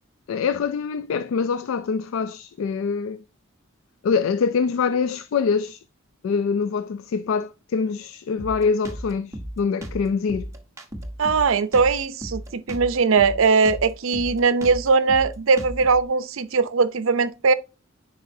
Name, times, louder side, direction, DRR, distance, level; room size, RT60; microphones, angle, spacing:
voice 1, 0.3-3.2 4.0-5.8 6.2-10.5, left 5 dB, 70° left, 0.3 m, -24 dB
Drum kit, 8.4-16.0, equal, 15° right, 0.9 m, -35 dB
voice 2, 11.2-17.5, right 4 dB, 70° right, 0.6 m, -20 dB
10.0 x 4.3 x 2.7 m
head